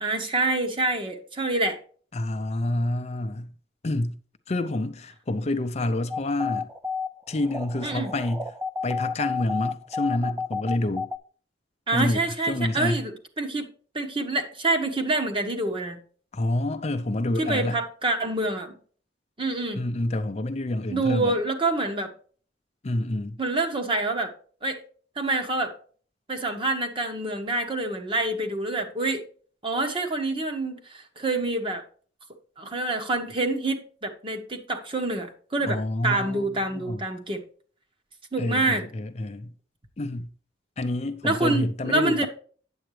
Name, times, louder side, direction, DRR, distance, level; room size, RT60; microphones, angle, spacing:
voice 1, 0.0-1.8 7.8-8.1 11.9-13.7 13.9-16.0 17.4-18.8 19.4-19.8 20.9-22.1 23.4-24.3 24.6-24.8 25.2-25.8 26.3-29.2 29.6-31.8 32.6-37.4 38.3-38.9 41.2-42.3, right 2 dB, 30° right, 1.2 m, -27 dB
voice 2, 2.1-3.5 3.8-4.2 4.5-6.7 7.3-8.5 8.8-11.1 11.9-13.0 16.3-17.8 19.7-21.4 22.8-23.4 35.6-37.0 38.4-39.5 40.0-40.3 40.8-42.3, left 1 dB, 35° left, 0.5 m, -28 dB
sound 1, 6.1-11.2, left 4 dB, 10° right, 0.4 m, -31 dB
8.8 x 7.8 x 3.2 m
head